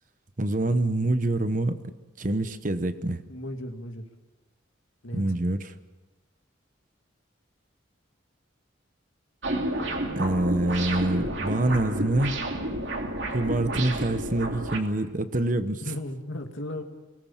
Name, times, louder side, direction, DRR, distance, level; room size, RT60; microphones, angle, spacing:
voice 1, 0.4-1.8 2.2-3.2 5.1-5.7 10.2-12.4 13.3-15.8, right 1 dB, 40° right, 11 dB, 1.0 m, -26 dB
voice 2, 3.3-4.0 5.0-5.4 15.8-16.8, left 1 dB, 85° left, 5 dB, 2.3 m, -35 dB
sound 1, 9.4-14.8, right 1 dB, 70° right, 2.7 m, -30 dB
23.5 x 18.5 x 7.4 m, 1.2 s
head